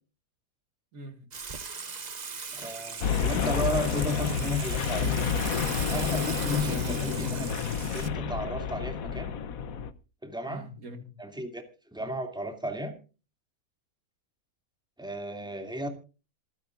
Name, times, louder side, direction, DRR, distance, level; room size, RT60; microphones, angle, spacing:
voice 1, 0.9-1.3 6.6-7.8 10.5-11.1 12.0-12.1, left 2 dB, 75° right, 2.3 m, -42 dB
Water / Water tap faucet / Sink (filling or washing), 1.3-8.1, right 5 dB, 35° right, 0.9 m, -39 dB
voice 2, 2.5-5.2 5.9-7.5 7.9-9.4 10.2-10.7 11.2-11.6 11.9-12.9 15.0-15.9, equal, 5° right, 2.5 m, -34 dB
sound 1, 3.0-9.9, left 7 dB, 75° left, 1.3 m, -29 dB
26.5 x 9.8 x 2.5 m
omnidirectional pair, 1.5 m